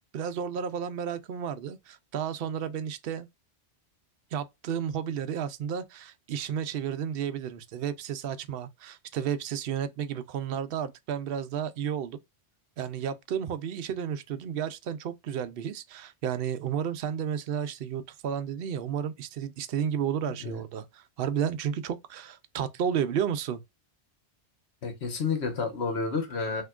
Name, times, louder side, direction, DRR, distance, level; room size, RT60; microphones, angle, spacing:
voice 1, 0.1-3.3 4.3-12.2 12.8-23.6, right 8 dB, 60° right, 0.8 m, -32 dB
voice 2, 24.8-26.6, left 5 dB, 70° left, 1.3 m, -30 dB
5.8 x 2.8 x 2.4 m
omnidirectional pair, 1.2 m